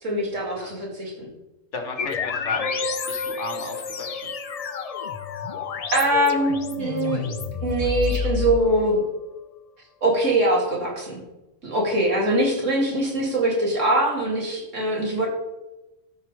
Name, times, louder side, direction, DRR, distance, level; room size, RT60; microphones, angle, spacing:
voice 1, 0.0-1.3 5.9-7.3 7.6-9.0 10.0-11.2 11.6-15.3, right 1 dB, 75° right, -2 dB, 2.6 m, -23 dB
voice 2, 1.7-2.7 3.1-4.3, left 3 dB, 70° left, 4 dB, 1.7 m, -34 dB
sound 1, 2.0-9.2, left 5 dB, 45° left, 0.5 m, -29 dB
13.5 x 4.5 x 4.8 m, 0.99 s
omnidirectional pair, 1.3 m